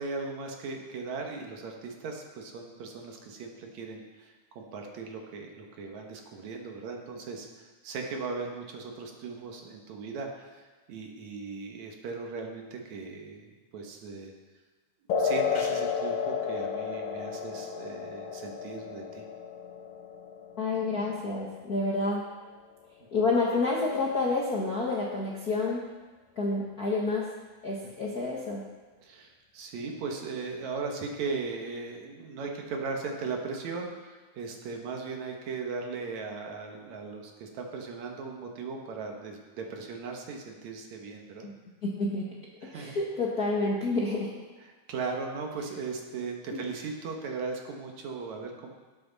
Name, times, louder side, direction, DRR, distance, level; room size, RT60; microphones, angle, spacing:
voice 1, 0.0-14.3 15.2-19.2 28.0-28.2 29.0-41.5 42.6-43.0 44.6-48.8, right 4 dB, 70° right, 2 dB, 2.5 m, -38 dB
sound 1, 15.1-22.1, left 6 dB, 75° left, 2.4 m, -33 dB
voice 2, 20.6-22.2 23.1-25.8 26.4-27.3 27.6-28.6 41.4-41.5 41.8-42.3 42.7-44.3 46.5-46.6, left 3 dB, 50° left, -4 dB, 1.1 m, -29 dB
18.0 x 7.8 x 4.0 m, 1.3 s
omnidirectional pair, 3.5 m